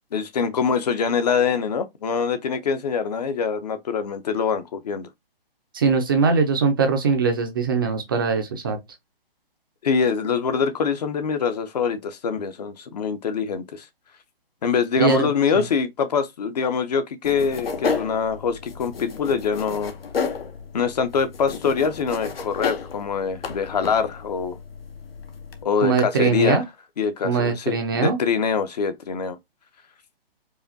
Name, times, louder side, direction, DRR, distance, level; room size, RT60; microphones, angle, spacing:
voice 1, 0.1-5.1 9.8-13.8 14.6-19.9 20.7-24.6 25.6-26.6 27.0-29.4, left 6 dB, 45° left, 0.7 m, -24 dB
voice 2, 5.7-8.8 15.0-15.3 15.5-15.6 25.8-26.6 27.2-28.2, right 5 dB, 25° right, 0.5 m, -21 dB
sound 1, 17.2-25.6, left 5 dB, 75° left, 0.9 m, -32 dB
4.9 x 2.4 x 2.7 m
figure-of-eight pair, 145°, 30 cm